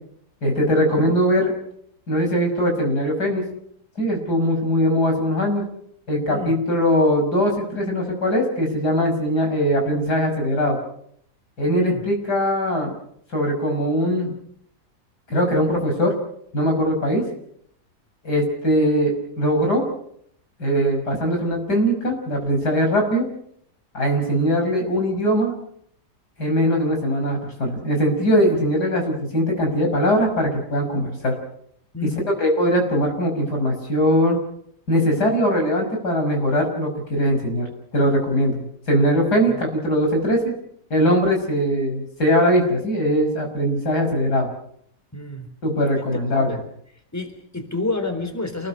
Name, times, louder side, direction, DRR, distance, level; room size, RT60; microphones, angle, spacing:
voice 1, 0.4-1.5 2.1-3.4 4.0-5.6 6.1-10.8 11.6-12.9 13.3-14.3 15.3-16.1 16.5-17.2 18.2-19.8 20.6-23.3 23.9-25.5 26.4-31.3 32.1-34.4 34.9-37.7 37.9-40.5 40.9-44.5 45.6-46.6, equal, 70° left, 2 dB, 6.7 m, -21 dB
voice 2, 31.9-32.3 35.1-35.3 39.5-39.6 45.1-45.5 46.0-46.1 46.3-46.6 47.1-48.7, left 3 dB, 10° left, 6 dB, 3.8 m, -29 dB
28.5 x 19.5 x 6.6 m, 0.70 s
omnidirectional pair, 1.8 m